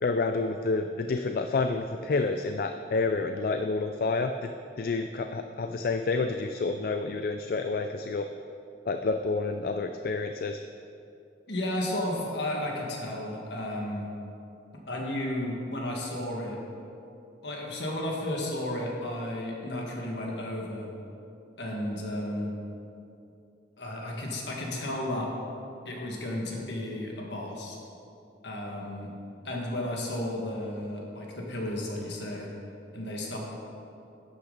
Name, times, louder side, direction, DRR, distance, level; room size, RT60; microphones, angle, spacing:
voice 1, 0.0-4.5 4.8-8.3 8.9-10.6, left 3 dB, 50° left, 7 dB, 0.3 m, -29 dB
voice 2, 11.5-14.1 14.9-16.6 17.4-20.9 21.6-22.5 23.8-25.3 25.9-27.8 28.4-29.1 29.4-32.5 32.9-33.4, left 1 dB, 65° left, -2 dB, 1.8 m, -33 dB
11.5 x 8.9 x 4.0 m, 2.7 s
head